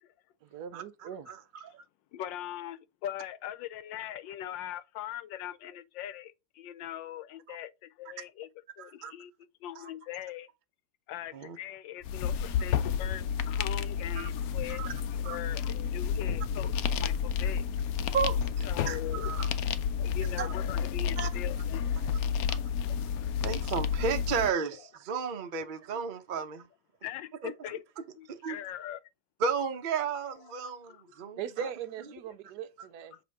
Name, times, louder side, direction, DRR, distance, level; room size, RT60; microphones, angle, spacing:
voice 1, 0.4-1.3 31.4-33.2, right 9 dB, 70° right, 1.1 m, -40 dB
voice 2, 2.1-8.5 8.8-9.3 9.6-10.5 11.1-18.1 18.6-19.5 20.0-21.9 22.8-23.0 25.6-26.0 26.3-26.4 27.0-27.8 28.1-29.0 30.4-31.0 31.6-31.7 33.1-33.2, left 12 dB, 90° left, 1.4 m, -41 dB
voice 3, 8.8-9.1 11.3-11.6 14.2-14.3 14.7-14.9 15.2-15.4 18.1-19.5 20.4-20.5 21.2-21.3 22.5-22.6 23.4-26.7 27.4-27.5 28.3-28.6 29.4-31.7, right 6 dB, 50° right, 0.5 m, -33 dB
sound 1, 12.0-24.5, left 7 dB, 70° left, 0.9 m, -31 dB
7.7 x 3.0 x 4.7 m
omnidirectional pair, 2.0 m